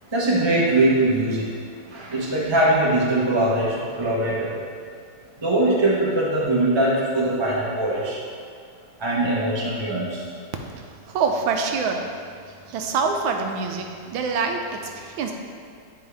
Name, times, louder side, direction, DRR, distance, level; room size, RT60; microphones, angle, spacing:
voice 1, 0.1-1.4 1.9-3.7 4.0-4.5 5.4-8.2 9.0-10.1, right 1 dB, 25° right, -6 dB, 0.6 m, -21 dB
voice 2, 10.8-12.1 12.7-15.3, right 5 dB, 90° right, 3 dB, 1.5 m, -25 dB
9.5 x 4.5 x 3.4 m, 2.2 s
omnidirectional pair, 2.1 m